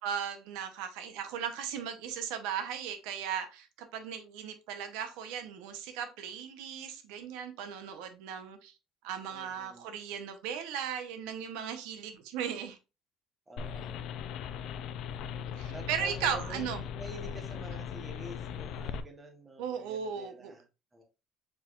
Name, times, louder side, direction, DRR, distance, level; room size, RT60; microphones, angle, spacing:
voice 1, 0.0-8.7 9.0-12.8 15.4-16.8 19.6-20.5, right 8 dB, 85° right, 0.8 m, -37 dB
voice 2, 9.3-9.9 13.5-14.0 15.7-20.6 20.9-21.0, right 1 dB, 15° right, 0.9 m, -48 dB
sound 1, 13.6-19.0, left 8 dB, 55° left, 0.4 m, -39 dB
4.6 x 4.4 x 2.4 m
cardioid pair, 160°, 0 cm